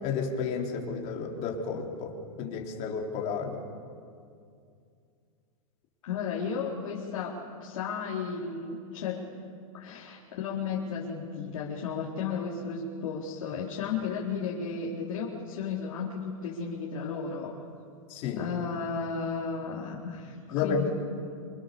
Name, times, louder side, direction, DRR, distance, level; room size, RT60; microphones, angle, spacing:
voice 1, 0.0-3.6 18.1-18.4 20.5-20.8, left 5 dB, 40° left, 0 dB, 4.4 m, -32 dB
voice 2, 6.0-9.3 9.7-17.6 18.3-20.9, left 6 dB, 70° left, -5 dB, 4.2 m, -34 dB
26.5 x 25.0 x 7.1 m, 2.4 s
hypercardioid pair, 135°, 18 cm